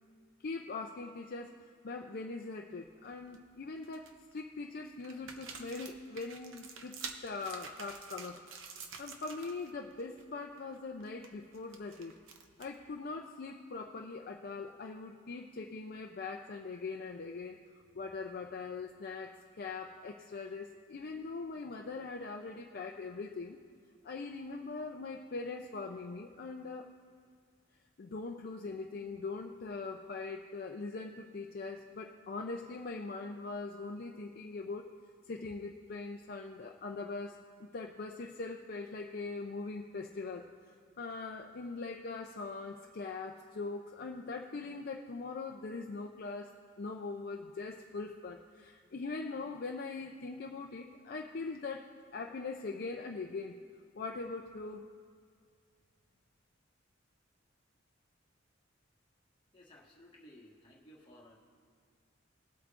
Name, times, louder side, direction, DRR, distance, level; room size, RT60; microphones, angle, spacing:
voice 1, 0.4-8.4 9.0-12.2 12.6-17.6 17.9-23.6 24.0-26.9 28.0-34.9 35.3-40.5 41.0-46.5 46.8-53.6 54.0-54.9, left 3 dB, 50° left, 2 dB, 0.5 m, -41 dB
sound 1, 2.9-3.3 3.8-4.4 5.0-9.7 9.9-10.2 10.6-12.9, right 5 dB, 85° right, 0.8 m, -48 dB
voice 2, 59.5-61.3, left 1 dB, 25° left, -4 dB, 1.6 m, -57 dB
20.0 x 8.1 x 2.5 m, 2.1 s
head